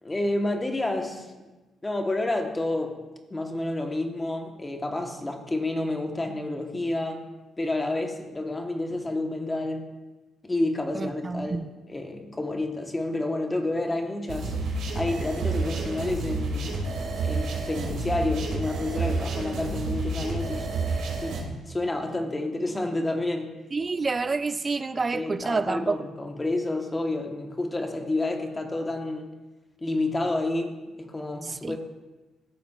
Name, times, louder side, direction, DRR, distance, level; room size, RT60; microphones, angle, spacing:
voice 1, 0.0-1.3 1.8-3.0 3.3-7.2 7.6-9.9 10.4-14.5 14.9-16.8 17.2-20.7 21.2-23.5 25.1-29.3 29.8-31.8, left 2 dB, 20° left, 1.2 m, -29 dB
voice 2, 10.9-11.7 23.7-26.0 31.4-31.8, right 4 dB, 30° right, 0.4 m, -28 dB
sound 1, 14.3-21.4, right 3 dB, 85° right, 2.4 m, -29 dB
14.5 x 6.9 x 2.4 m
cardioid pair, 90°, 0 cm